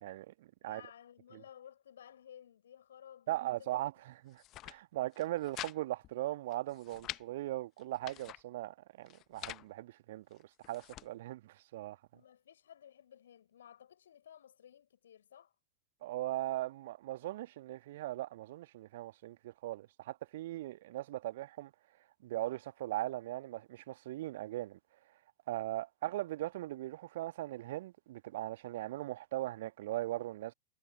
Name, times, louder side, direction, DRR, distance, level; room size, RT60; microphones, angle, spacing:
voice 1, 0.0-0.8 1.3-1.4 3.3-12.0 16.0-21.7 22.2-24.8 25.5-30.5, right 15 dB, 55° right, 1.6 m, -39 dB
voice 2, 0.6-3.9 12.1-15.5, left 9 dB, 65° left, 5.8 m, -56 dB
sound 1, 4.3-4.8 5.1-5.8 6.0-6.1 6.5-7.2 7.8-8.4 9.1-9.7 10.3-11.1, left 15 dB, 35° left, 1.0 m, -46 dB
figure-of-eight pair, 90°, 0 cm